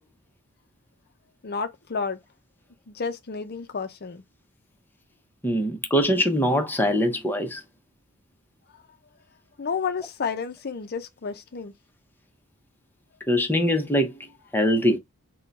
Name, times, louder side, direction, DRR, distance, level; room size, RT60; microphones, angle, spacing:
voice 1, 1.4-2.2 2.9-4.2 9.6-11.7, left 5 dB, 50° left, 0.6 m, -31 dB
voice 2, 5.4-7.6 13.3-14.1 14.5-15.0, equal, 10° left, 0.8 m, -22 dB
3.7 x 2.3 x 4.0 m
head